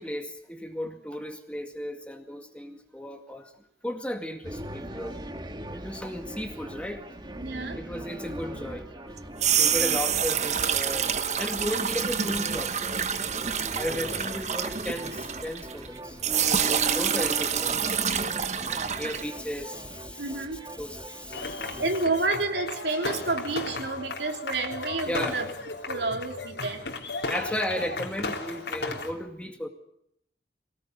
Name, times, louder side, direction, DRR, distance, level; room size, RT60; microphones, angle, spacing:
voice 1, 0.0-3.5 3.8-5.2 5.7-9.2 9.6-11.1 11.4-12.7 13.8-20.5 20.8-21.8 25.0-25.4 27.3-29.7, equal, 5° left, 5 dB, 2.0 m, -35 dB
sound 1, 4.4-21.9, right 1 dB, 25° right, 1.6 m, -41 dB
voice 2, 7.4-7.8 9.7-10.0 20.2-20.6 21.8-25.5 25.9-26.9, right 3 dB, 75° right, 3 dB, 3.6 m, -29 dB
sound 2, 9.2-15.9 16.2-19.2, right 8 dB, 40° right, 1.1 m, -27 dB
sound 3, 21.3-29.1, left 3 dB, 75° left, 3.6 m, -35 dB
24.0 x 18.5 x 9.6 m, 0.74 s
head